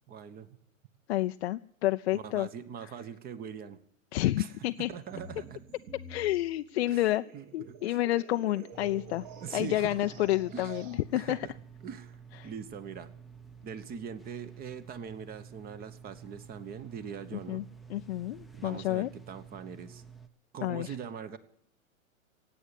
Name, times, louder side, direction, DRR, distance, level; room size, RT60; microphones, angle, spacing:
voice 1, 0.1-0.5 2.1-3.8 4.4-5.6 6.9-8.0 8.3-8.7 9.4-10.0 10.5-10.8 11.1-11.5 11.8-13.1 13.6-17.7 18.5-20.0 20.5-21.4, right 7 dB, 20° right, 15 dB, 1.2 m, -42 dB
voice 2, 1.1-2.5 4.1-4.9 6.1-7.2 7.5-9.3 9.5-11.4 12.4-12.5 17.3-17.6 17.9-19.1 20.6-20.9, left 15 dB, 50° left, 9 dB, 0.5 m, -29 dB
sound 1, 4.7-11.0, right 5 dB, 35° right, 2.5 m, -48 dB
sound 2, 8.7-20.3, right 6 dB, ahead, 0.8 m, -51 dB
17.0 x 8.8 x 9.6 m, 0.64 s
hypercardioid pair, 120°, 41 cm